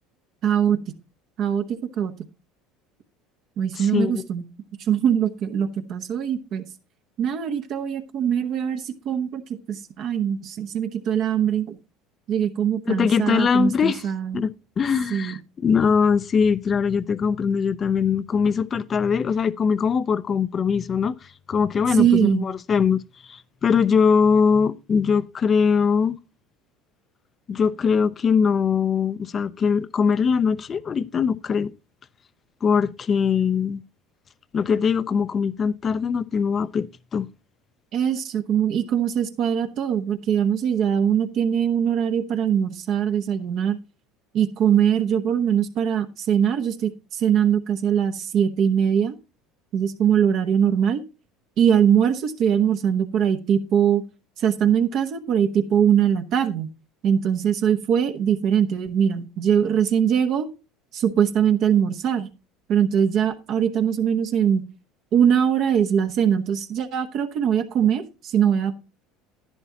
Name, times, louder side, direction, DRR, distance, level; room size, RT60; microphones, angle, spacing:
voice 1, 0.4-0.8 1.4-2.1 3.6-4.5 4.9-6.6 7.2-9.4 9.7-11.7 12.3-14.4 15.1-15.3 22.0-22.5 37.9-43.8 44.3-49.1 49.7-51.0 51.6-54.0 54.4-56.7 57.0-60.5 60.9-62.3 62.7-64.6 65.1-68.7, right 8 dB, 55° right, 1.0 m, -22 dB
voice 2, 3.8-4.2 12.9-14.0 14.3-21.2 21.5-23.0 23.3-26.2 27.5-31.7 32.6-33.8 34.5-37.3, left 6 dB, 35° left, 0.6 m, -21 dB
11.0 x 10.0 x 2.8 m
hypercardioid pair, 85°, 0 cm